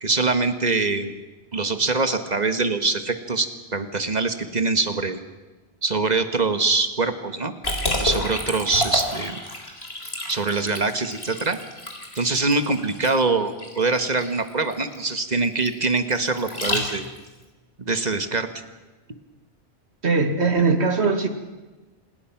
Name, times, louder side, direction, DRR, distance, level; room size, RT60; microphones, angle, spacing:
voice 1, 0.0-1.2 1.5-5.2 5.8-7.5 8.0-9.4 10.3-11.6 12.1-17.1 17.8-18.5 20.6-20.8, right 3 dB, 40° right, 9 dB, 1.6 m, -24 dB
Liquid, 7.6-17.3, left 1 dB, 65° left, 4.0 m, -30 dB
voice 2, 20.0-21.3, right 4 dB, 75° right, 8 dB, 2.2 m, -20 dB
27.5 x 20.5 x 6.0 m, 1.2 s
omnidirectional pair, 1.1 m